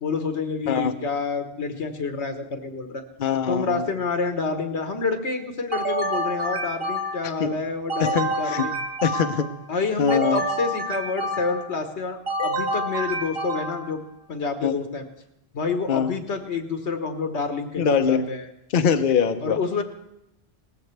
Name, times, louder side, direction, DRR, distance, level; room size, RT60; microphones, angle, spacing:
voice 1, 0.0-3.0 3.5-8.7 9.7-14.0 14.3-15.0 15.5-18.4 19.4-19.8, left 4 dB, 80° left, 6 dB, 1.5 m, -28 dB
voice 2, 3.2-3.9 7.4-7.5 8.0-8.7 9.0-9.5 10.0-10.4 14.6-14.8 15.9-16.1 17.8-18.2 18.7-19.6, left 6 dB, 55° left, 7 dB, 0.8 m, -22 dB
sound 1, 5.7-7.4 7.9-9.6 10.1-11.7 12.3-14.0, right 1 dB, 60° right, 1.5 m, -28 dB
18.5 x 14.5 x 3.3 m, 0.82 s
omnidirectional pair, 1.1 m